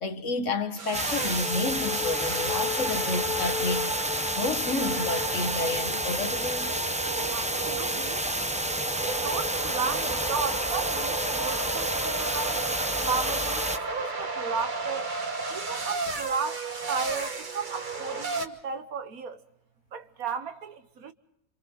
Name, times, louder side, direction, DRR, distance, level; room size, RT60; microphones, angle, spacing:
voice 1, 0.0-3.9 4.4-6.7, left 3 dB, 60° left, 1.7 m, -30 dB
sound 1, 0.8-18.5, right 2 dB, 35° right, 1.4 m, -33 dB
sound 2, 0.9-13.8, right 1 dB, 5° right, 0.6 m, -30 dB
voice 2, 7.3-8.3 9.0-12.6 13.0-13.6 13.9-15.1 15.5-19.4 19.9-21.1, right 5 dB, 90° right, 1.7 m, -34 dB
29.0 x 27.0 x 3.8 m
omnidirectional pair, 1.5 m